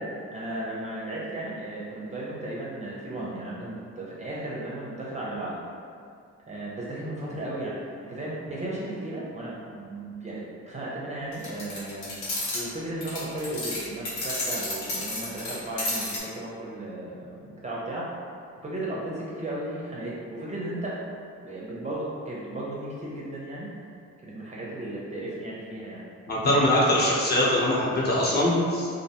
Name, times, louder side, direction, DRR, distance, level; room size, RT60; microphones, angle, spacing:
voice 1, 0.0-5.5 6.5-7.7 8.0-12.1 12.5-18.1 18.6-21.0 21.4-23.7 24.2-26.0 26.3-26.5 26.9-27.0, right 1 dB, 25° right, -6 dB, 0.5 m, -35 dB
sound 1, 11.3-12.7 13.0-16.2, left 1 dB, 80° left, 0.9 m, -32 dB
voice 2, 26.3-28.9, left 1 dB, 35° left, -7 dB, 0.7 m, -22 dB
2.4 x 2.2 x 2.8 m, 2.3 s
cardioid pair, 90°, 30 cm